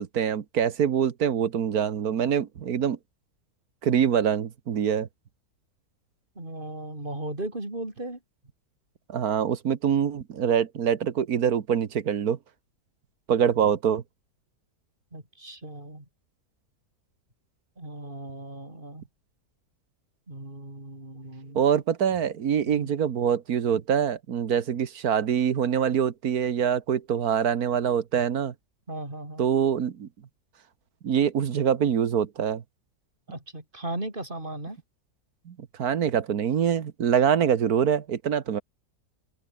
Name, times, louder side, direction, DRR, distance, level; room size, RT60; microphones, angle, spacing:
voice 1, 0.0-3.0 3.8-5.1 9.1-12.4 13.3-14.0 21.5-28.5 29.4-30.1 31.0-32.6 35.5-38.6, right 8 dB, 70° right, 1.7 m, -24 dB
voice 2, 6.4-8.2 15.1-16.1 17.8-19.0 20.3-21.6 22.7-22.9 28.9-29.5 33.3-34.8, right 2 dB, 30° right, 5.6 m, -37 dB
omnidirectional pair, 1.7 m